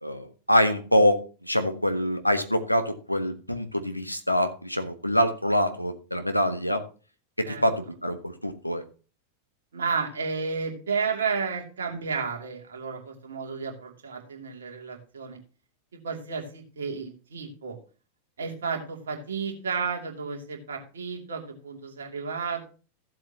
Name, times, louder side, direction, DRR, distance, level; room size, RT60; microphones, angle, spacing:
voice 1, 0.0-6.8 7.4-8.8, equal, 90° left, 8 dB, 1.3 m, -25 dB
voice 2, 9.7-15.4 16.0-17.8 18.4-22.7, right 5 dB, 65° right, 1 dB, 2.6 m, -32 dB
15.0 x 7.6 x 2.9 m, 0.35 s
figure-of-eight pair, 90°, 0 cm